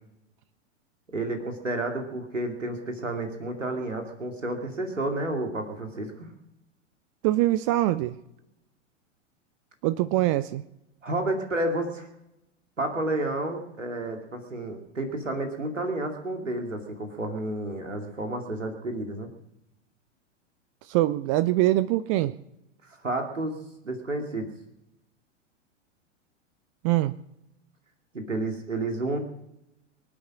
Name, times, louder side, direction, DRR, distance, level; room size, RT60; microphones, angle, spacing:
voice 1, 1.1-6.3 11.0-12.1 12.8-19.3 22.8-23.6 23.8-24.5 28.1-29.2, right 2 dB, 80° right, 4 dB, 2.5 m, -31 dB
voice 2, 7.2-8.1 9.8-10.6 20.9-22.3 26.8-27.1, right 15 dB, 25° right, 15 dB, 0.5 m, -23 dB
25.0 x 8.6 x 6.1 m, 0.86 s
figure-of-eight pair, 95°, 37 cm